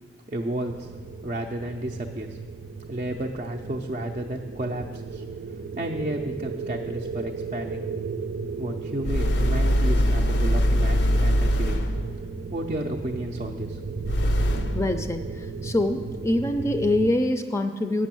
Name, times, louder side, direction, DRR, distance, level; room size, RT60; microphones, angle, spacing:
voice 1, 0.3-0.9 1.2-2.4 2.9-5.2 5.8-7.9 8.6-11.8 12.5-13.8, right 1 dB, 40° right, 1 dB, 0.5 m, -32 dB
sound 1, 0.6-17.1, right 4 dB, 85° right, 0.5 m, -35 dB
sound 2, 9.0-12.1 14.0-14.9, equal, 85° left, 0.6 m, -22 dB
voice 2, 14.7-15.2 15.6-18.1, left 1 dB, 15° left, 7 dB, 0.4 m, -24 dB
9.0 x 6.3 x 7.6 m, 1.5 s
head